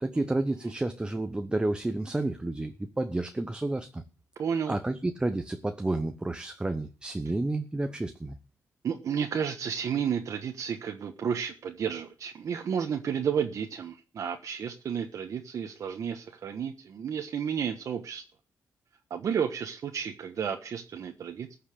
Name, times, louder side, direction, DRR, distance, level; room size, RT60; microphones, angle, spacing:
voice 1, 0.0-4.0 4.7-8.4, right 2 dB, 15° right, 0.9 m, -30 dB
voice 2, 4.4-4.8 8.8-18.2 19.1-21.6, right 7 dB, 60° right, 1.3 m, -32 dB
14.5 x 5.8 x 8.4 m
cardioid pair, 100°, 6 cm